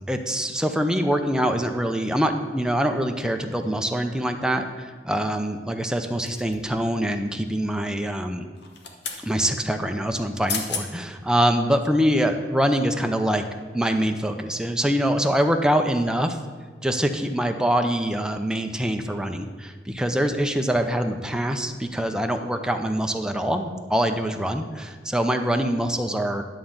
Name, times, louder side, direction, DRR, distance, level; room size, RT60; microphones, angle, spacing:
voice 1, 0.1-8.4 9.2-13.4 13.7-16.4 16.8-26.4, equal, 5° right, 5 dB, 0.5 m, -24 dB
sound 1, 6.2-6.8 8.5-9.2 10.2-10.3 10.5-10.9 11.4-11.5, left 5 dB, 65° left, 1.1 m, -32 dB
11.0 x 3.8 x 7.2 m, 1.4 s
head